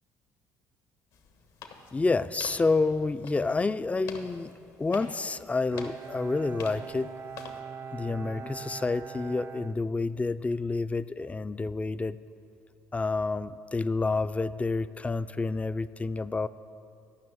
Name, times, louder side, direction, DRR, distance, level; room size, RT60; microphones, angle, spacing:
sound 1, 1.1-7.6, left 5 dB, 75° left, 1.3 m, -47 dB
voice 1, 1.9-4.5 4.8-7.1 7.9-12.2 12.9-16.5, left 3 dB, 20° left, 13 dB, 0.4 m, -29 dB
Bowed string instrument, 5.7-10.6, right 6 dB, 40° right, 0.5 m, -42 dB
12.5 x 6.0 x 8.6 m, 2.7 s
supercardioid pair, 65°, 7 cm